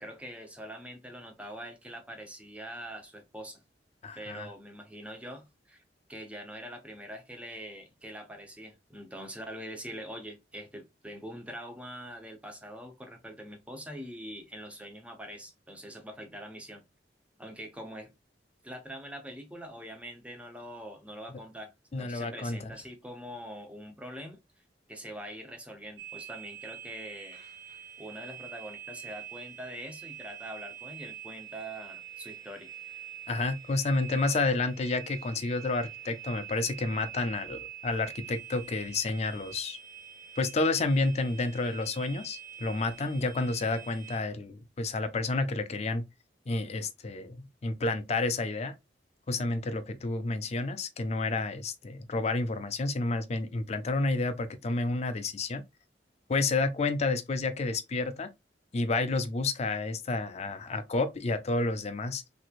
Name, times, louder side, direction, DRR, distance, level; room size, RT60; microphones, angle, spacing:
voice 1, 0.0-3.6 4.2-5.8 6.1-16.8 17.4-18.1 18.6-24.4 24.9-27.4 28.0-32.7, equal, 10° right, 0.7 m, -43 dB
voice 2, 4.0-4.5 21.9-22.7 33.3-39.8 40.4-46.0 46.5-48.7 49.3-55.6 56.3-58.3 58.7-62.2, left 3 dB, 40° left, 0.4 m, -30 dB
sound 1, 26.0-44.2, right 10 dB, 60° right, 1.2 m, -46 dB
3.4 x 3.1 x 2.4 m
head